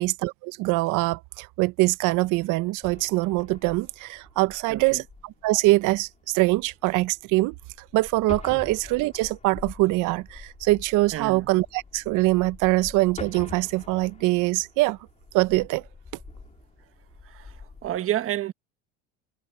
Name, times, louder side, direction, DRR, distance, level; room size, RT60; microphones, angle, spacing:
voice 1, 0.0-7.5 7.9-15.0 15.3-15.8, right 20 dB, 55° right, 0.8 m, -23 dB
sound 1, 2.8-18.0, left 4 dB, 20° left, 4.4 m, -45 dB
voice 2, 4.7-5.0 8.5-8.7 11.1-11.5 17.2-18.5, right 13 dB, 35° right, 1.2 m, -30 dB
supercardioid pair, 125°, 36 cm